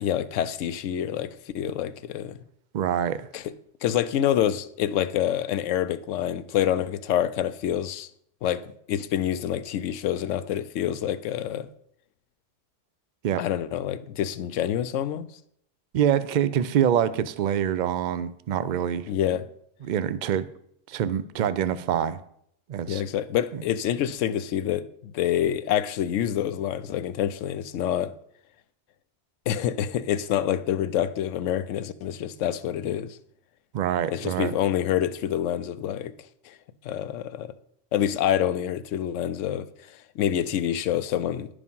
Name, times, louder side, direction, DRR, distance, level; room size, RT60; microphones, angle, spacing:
voice 1, 0.0-2.4 3.3-3.5 3.8-8.1 8.4-11.7 13.4-15.3 19.1-19.5 22.9-28.1 29.5-33.2 34.1-36.1 36.5-36.6 36.8-37.5 37.9-41.5, left 10 dB, 80° left, 0.9 m, -27 dB
voice 2, 2.7-3.3 13.2-13.4 15.9-19.1 19.8-20.5 20.9-22.2 22.7-23.0 33.7-34.5, right 9 dB, 60° right, 0.5 m, -25 dB
11.0 x 5.0 x 5.4 m
omnidirectional pair, 1.3 m